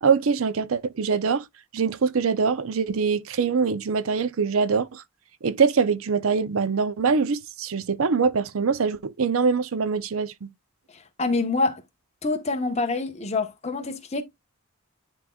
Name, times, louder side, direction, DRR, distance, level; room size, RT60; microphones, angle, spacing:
voice 1, 0.0-1.4 1.7-5.0 5.4-10.5, right 5 dB, 75° right, 0.5 m, -23 dB
voice 2, 11.2-11.8 12.2-14.2, left 3 dB, 30° left, 1.1 m, -26 dB
10.5 x 3.8 x 2.3 m
head